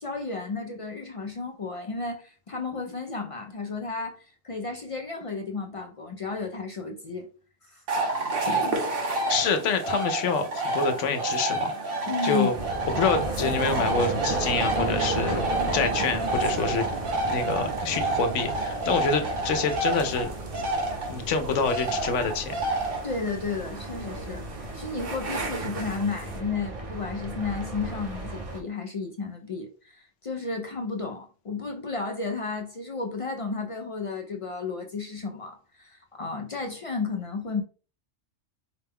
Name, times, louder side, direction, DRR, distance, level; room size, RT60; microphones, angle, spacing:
voice 1, 0.0-7.3 7.6-7.8 8.4-8.9 12.1-12.5 23.0-24.4 24.7-37.6, left 4 dB, 55° left, 0.3 m, -33 dB
sound 1, 7.9-26.4, right 2 dB, 55° right, 1.0 m, -30 dB
voice 2, 9.1-11.7 12.2-12.5 13.0-15.4 15.7-16.8 17.3-20.3 21.1-22.6, left 5 dB, 85° left, 1.0 m, -27 dB
sound 2, 12.5-28.6, right 2 dB, 35° right, 0.7 m, -34 dB
4.8 x 2.2 x 3.5 m
omnidirectional pair, 1.2 m